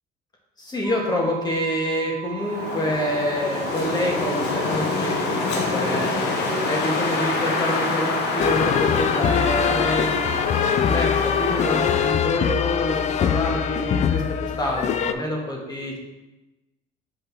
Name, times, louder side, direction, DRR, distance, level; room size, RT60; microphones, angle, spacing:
voice 1, 0.6-6.1 6.7-16.0, left 1 dB, 25° left, -2 dB, 1.6 m, -27 dB
sound 1, 0.8-10.4, right 17 dB, 20° right, 1.5 m, -38 dB
Wind, 2.4-12.3, left 3 dB, 85° left, 1.0 m, -26 dB
sound 2, 8.4-15.1, left 8 dB, 45° left, 0.4 m, -23 dB
6.3 x 5.1 x 3.5 m, 1.0 s
cardioid pair, 110°, 17 cm